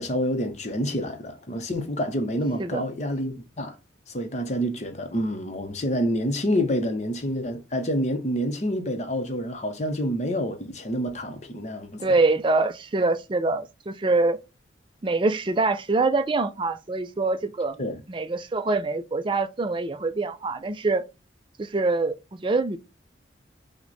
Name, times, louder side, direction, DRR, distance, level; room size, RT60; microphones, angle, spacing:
voice 1, 0.0-3.8 4.1-12.1 17.8-18.0, equal, 35° left, 0.7 m, -28 dB
voice 2, 12.0-14.4 15.0-17.8 18.1-21.0 21.6-22.8, right 3 dB, 25° right, 0.4 m, -24 dB
5.9 x 2.2 x 3.9 m
head